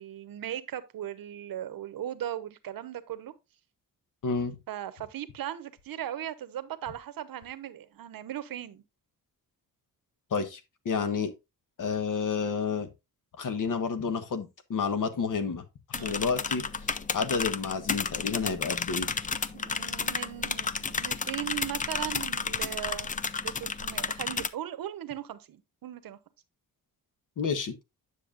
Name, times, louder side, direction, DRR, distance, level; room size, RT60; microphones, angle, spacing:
voice 1, 0.0-3.3 4.7-8.8 11.0-11.2 15.9-16.2 19.5-26.2, right 11 dB, 70° right, 0.9 m, -38 dB
voice 2, 4.2-4.6 10.3-10.6 10.8-11.3 11.8-12.9 13.4-15.6 15.9-16.6 17.1-19.1 27.4-27.7, left 5 dB, 60° left, 1.2 m, -30 dB
sound 1, 15.9-24.5, left 5 dB, 25° left, 0.4 m, -32 dB
9.6 x 6.7 x 2.4 m
wide cardioid pair, 135°, 35 cm